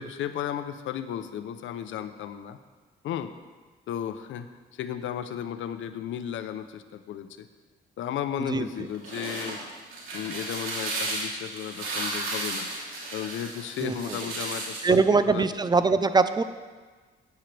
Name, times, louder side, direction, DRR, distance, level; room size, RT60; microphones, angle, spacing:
voice 1, 0.0-2.6 3.0-3.3 3.9-4.5 4.8-7.5 8.0-9.6 10.1-12.7 13.1-15.5, left 9 dB, 75° left, 10 dB, 0.8 m, -34 dB
sound 1, 8.8-15.0, right 2 dB, 80° right, 3.3 m, -34 dB
voice 2, 14.8-16.4, right 4 dB, 20° right, 12 dB, 0.6 m, -22 dB
16.5 x 9.2 x 3.4 m, 1.4 s
cardioid pair, 90°, 20 cm